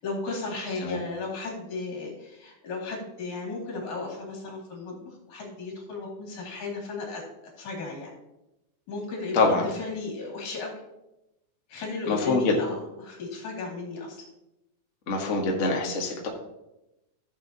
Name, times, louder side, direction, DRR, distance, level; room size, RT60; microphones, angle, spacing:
voice 1, 0.0-7.2 7.6-8.1 8.9-10.8 11.7-14.2, left 3 dB, 70° left, -2 dB, 3.8 m, -35 dB
voice 2, 9.3-9.6 12.1-12.5 15.1-16.3, left 3 dB, 45° left, 0 dB, 1.0 m, -24 dB
15.5 x 7.4 x 2.8 m, 0.92 s
omnidirectional pair, 3.5 m